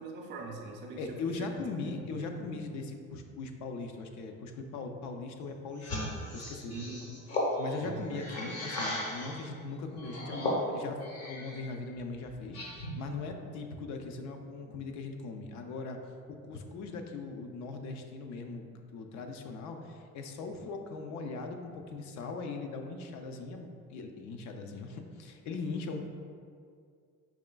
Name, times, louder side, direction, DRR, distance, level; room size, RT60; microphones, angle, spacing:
voice 1, 0.0-1.2 1.8-2.3 6.7-7.1 7.8-8.1, right 4 dB, 35° right, -1 dB, 0.4 m, -42 dB
voice 2, 1.0-6.7 7.6-16.0 16.3-18.7 18.9-26.1, left 3 dB, 65° left, 5 dB, 0.5 m, -40 dB
sound 1, 5.8-9.5 10.0-11.7 12.0-13.1, left 1 dB, 50° left, 0.8 m, -36 dB
4.9 x 3.1 x 2.2 m, 2.3 s
cardioid pair, 145°, 32 cm